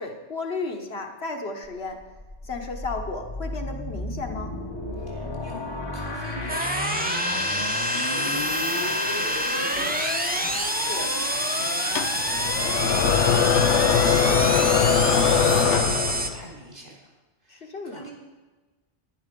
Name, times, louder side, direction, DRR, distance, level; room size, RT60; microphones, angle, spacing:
voice 1, 0.0-2.0 2.4-4.6 10.8-11.1 17.5-18.0, left 3 dB, 65° left, 3 dB, 1.4 m, -33 dB
sound 1, 1.6-15.6, left 2 dB, 25° left, 1.0 m, -32 dB
voice 2, 5.0-17.1 17.4-18.1, right 1 dB, 45° right, -2 dB, 3.8 m, -42 dB
sound 2, 6.5-16.3, right 1 dB, 10° right, 0.6 m, -27 dB
sound 3, 12.0-16.4, left 7 dB, 85° left, 1.0 m, -21 dB
11.0 x 10.5 x 5.2 m, 1.2 s
omnidirectional pair, 1.2 m